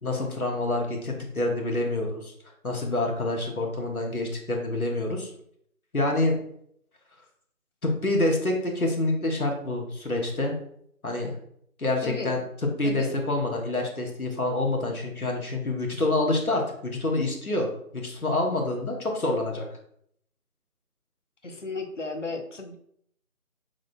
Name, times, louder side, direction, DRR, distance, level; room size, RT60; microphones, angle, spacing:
voice 1, 0.0-2.3 2.6-5.3 5.9-6.3 7.8-10.5 11.0-11.3 11.8-12.4 12.8-19.6, left 2 dB, 80° left, 1 dB, 1.5 m, -27 dB
voice 2, 12.0-12.4 12.8-13.1 21.4-22.8, left 3 dB, 60° left, 5 dB, 0.8 m, -34 dB
6.1 x 3.8 x 2.2 m, 0.69 s
figure-of-eight pair, 165°, 43 cm